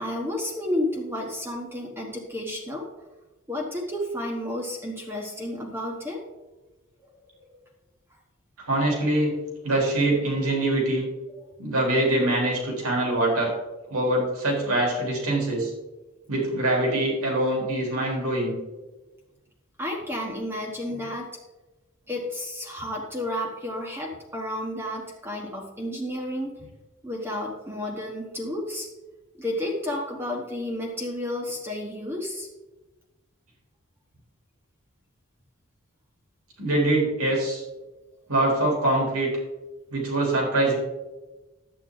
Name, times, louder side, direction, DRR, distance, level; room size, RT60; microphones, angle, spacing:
voice 1, 0.0-2.8 3.5-6.2 7.5-7.6 19.8-21.3 22.1-26.5 27.0-28.9 29.4-32.5, left 1 dB, 10° right, -1 dB, 1.3 m, -31 dB
voice 2, 8.7-9.3 9.6-11.1 11.6-13.5 13.9-15.7 16.3-18.6 36.6-37.6 38.3-39.3 39.9-40.8, right 1 dB, 85° right, -1 dB, 3.9 m, -24 dB
11.5 x 9.0 x 3.9 m, 1.1 s
head